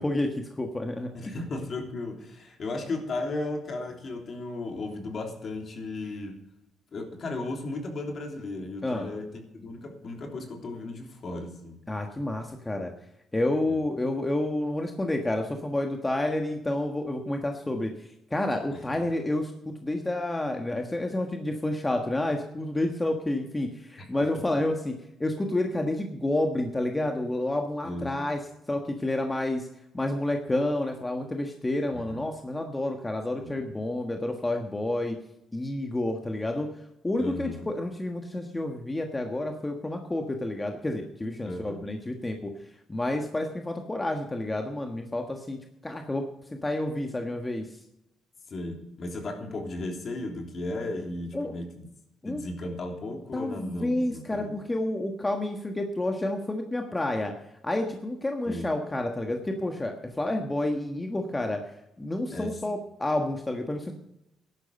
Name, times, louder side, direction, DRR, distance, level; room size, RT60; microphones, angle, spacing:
voice 1, 0.0-1.3 8.8-9.1 11.9-12.9 13.3-24.9 25.2-28.4 28.7-29.7 29.9-35.2 35.5-36.7 37.0-42.5 42.9-45.6 45.8-46.2 46.5-47.8 51.3-51.5 52.2-52.4 53.3-57.3 57.6-63.9, left 1 dB, 15° left, 4 dB, 1.4 m, -29 dB
voice 2, 1.1-6.4 6.9-11.8 13.7-13.8 18.7-18.8 24.0-24.1 27.8-28.1 31.9-32.2 33.4-33.6 37.2-37.7 41.4-41.8 48.5-51.9 52.2-54.6 58.5-58.7 62.3-62.6, left 2 dB, 50° left, 3 dB, 3.2 m, -35 dB
13.5 x 11.0 x 5.4 m, 0.84 s
cardioid pair, 90°, 0 cm